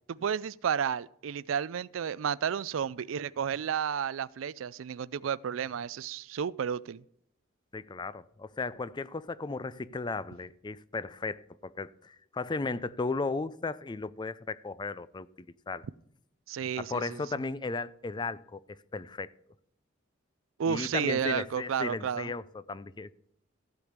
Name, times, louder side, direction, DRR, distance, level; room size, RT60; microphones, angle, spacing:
voice 1, 0.1-7.0 16.5-17.2 20.6-22.3, right 7 dB, 85° right, 0.4 m, -32 dB
voice 2, 7.7-15.3 15.7-15.9 16.8-19.3 20.7-23.1, left 3 dB, 25° left, 0.4 m, -35 dB
15.0 x 5.1 x 8.0 m
head